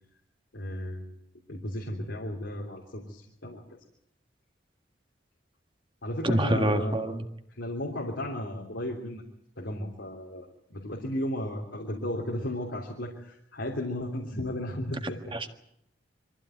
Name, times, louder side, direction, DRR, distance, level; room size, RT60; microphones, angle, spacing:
voice 1, 0.5-1.2 1.5-3.6 6.0-7.2 7.5-9.2 9.6-15.4, left 1 dB, 90° left, -1 dB, 3.3 m, -34 dB
voice 2, 6.2-7.2 15.3-15.5, right 1 dB, 30° right, 6 dB, 1.7 m, -26 dB
24.0 x 15.0 x 9.3 m, 0.76 s
head